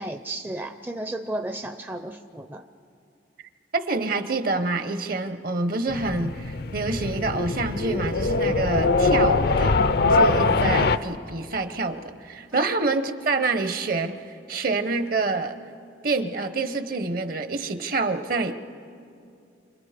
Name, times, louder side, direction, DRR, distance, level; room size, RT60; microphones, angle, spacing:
voice 1, 0.0-2.7, right 1 dB, 10° right, 6 dB, 0.5 m, -33 dB
voice 2, 3.7-9.8 10.1-15.6 16.0-18.6, right 3 dB, 50° right, 10 dB, 1.0 m, -27 dB
sound 1, 5.9-11.0, left 3 dB, 55° left, 0.5 m, -22 dB
28.0 x 26.0 x 5.1 m, 2.5 s
head